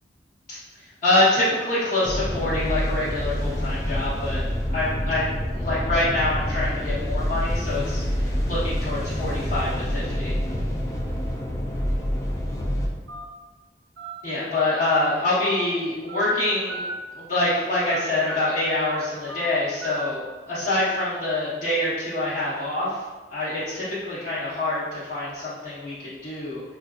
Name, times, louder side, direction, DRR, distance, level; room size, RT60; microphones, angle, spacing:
voice 1, 1.0-4.4 4.7-5.3 5.5-10.3 14.2-16.8 17.1-23.0 23.3-26.6, left 2 dB, 50° left, -13 dB, 0.9 m, -25 dB
sound 1, 2.0-12.9, equal, 15° left, 0.4 m, -27 dB
Telephone, 13.1-13.2 14.0-14.1 14.8-14.9 15.4-15.7 16.1-16.3 16.7-16.9 17.3-17.5 17.8-18.0 18.3-18.5 18.8-19.0 19.3-19.5 19.8-20.0, right 2 dB, 65° right, 0.5 m, -35 dB
4.2 x 2.4 x 2.3 m, 1.3 s
head